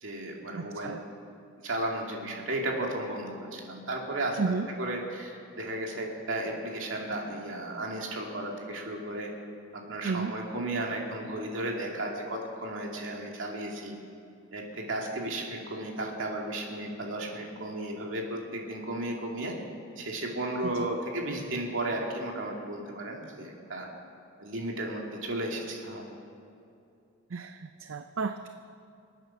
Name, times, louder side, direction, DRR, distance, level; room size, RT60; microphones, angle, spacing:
voice 1, 0.0-1.0 1.6-4.4 4.8-9.3 9.7-13.9 14.5-19.5 20.0-23.9 24.4-26.0, right 1 dB, 75° right, 0 dB, 2.5 m, -34 dB
voice 2, 0.5-1.0 4.4-4.7 10.0-10.3 20.6-20.7 27.3-28.5, right 4 dB, 90° right, 8 dB, 0.5 m, -32 dB
26.0 x 9.1 x 5.8 m, 2.6 s
head